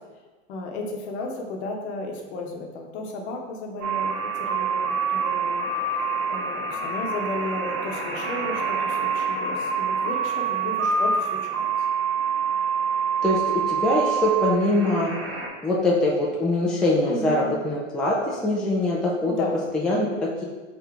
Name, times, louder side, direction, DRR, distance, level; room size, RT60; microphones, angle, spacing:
voice 1, 0.5-5.7 6.3-11.6 17.1-17.6 19.3-19.6, left 2 dB, 55° left, 1 dB, 1.0 m, -34 dB
sound 1, 3.8-15.5, right 5 dB, 55° right, 1.2 m, -26 dB
voice 2, 13.2-15.1 15.6-20.4, left 1 dB, ahead, -4 dB, 0.3 m, -23 dB
3.8 x 2.7 x 4.4 m, 1.3 s
hypercardioid pair, 95°, 39 cm